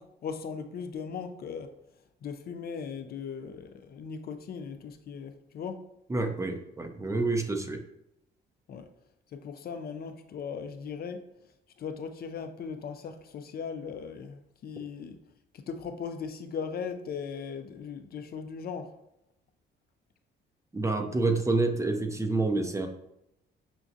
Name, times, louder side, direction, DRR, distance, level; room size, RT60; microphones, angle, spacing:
voice 1, 0.0-1.7 2.2-5.9 8.7-8.9 9.3-11.3 11.8-15.2 15.5-19.0, left 6 dB, 50° left, 7 dB, 0.4 m, -38 dB
voice 2, 6.1-7.8 20.7-22.9, right 3 dB, 15° right, 5 dB, 0.5 m, -28 dB
5.8 x 2.4 x 2.6 m, 0.83 s
cardioid pair, 90°, 20 cm